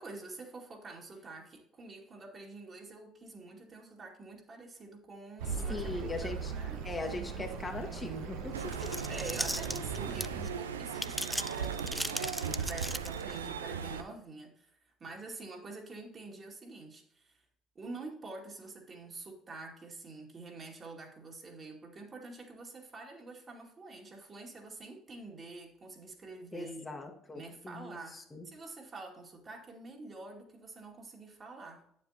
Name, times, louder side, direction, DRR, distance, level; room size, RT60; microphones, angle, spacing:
voice 1, 0.0-6.8 8.7-8.8 9.1-17.4 17.8-26.9 27.3-31.8, right 3 dB, 40° right, 0 dB, 2.3 m, -47 dB
Accelerating revving vroom, 5.4-10.5, right 6 dB, 75° right, 1.0 m, -39 dB
voice 2, 5.7-6.5 6.8-8.6 8.8-8.9 26.5-28.5, left 3 dB, 25° left, 3 dB, 1.4 m, -40 dB
sound 1, 8.5-14.0, right 7 dB, 90° right, 0.5 m, -38 dB
sound 2, 8.6-10.5 10.9-13.4, equal, ahead, 0.4 m, -37 dB
9.0 x 7.5 x 2.8 m, 0.71 s
hypercardioid pair, 60°, 0 cm